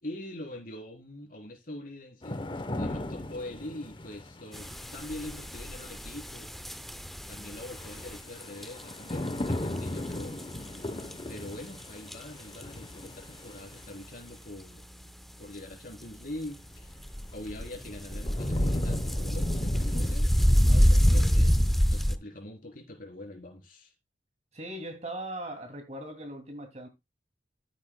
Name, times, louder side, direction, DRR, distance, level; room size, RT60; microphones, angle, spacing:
voice 1, 0.0-6.5 7.3-10.4 11.3-15.1 15.4-16.9 17.3-20.3 20.9-23.9, left 1 dB, 50° left, 4.1 m, -43 dB
sound 1, 2.2-5.3 7.7-14.0 16.6-16.7 17.3-20.1, left 1 dB, 30° left, 0.9 m, -36 dB
sound 2, 4.5-9.8 10.1-11.1 11.4-11.5 11.8-11.9 12.1-12.2 12.5-12.7 13.0-13.1 13.8-13.9 14.8-15.1 15.7-15.8 16.2-16.5 16.8-22.1, equal, ahead, 0.6 m, -26 dB
voice 2, 20.6-21.3 24.5-26.9, right 1 dB, 40° right, 2.6 m, -40 dB
14.0 x 8.6 x 2.2 m
head